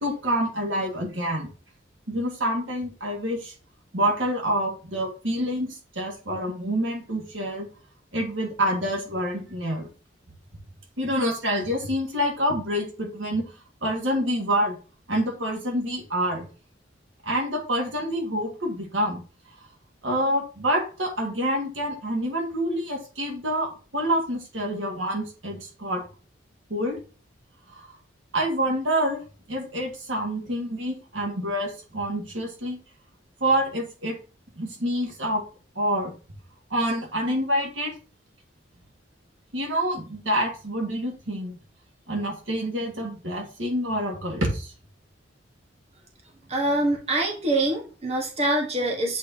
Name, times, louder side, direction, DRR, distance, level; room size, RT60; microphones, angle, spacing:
voice 1, 0.0-1.5 2.1-3.5 3.9-7.7 8.1-9.9 11.0-13.4 13.8-14.8 15.1-16.5 17.2-19.2 20.0-26.0 26.7-27.0 27.7-27.9 28.3-29.2 29.5-32.8 33.4-34.2 34.6-35.4 35.8-36.1 36.7-37.9 39.5-41.6 42.1-44.7, equal, 80° right, 1 dB, 1.8 m, -27 dB
voice 2, 46.5-49.2, right 1 dB, 35° right, 0 dB, 1.3 m, -25 dB
8.2 x 4.3 x 2.7 m, 0.37 s
head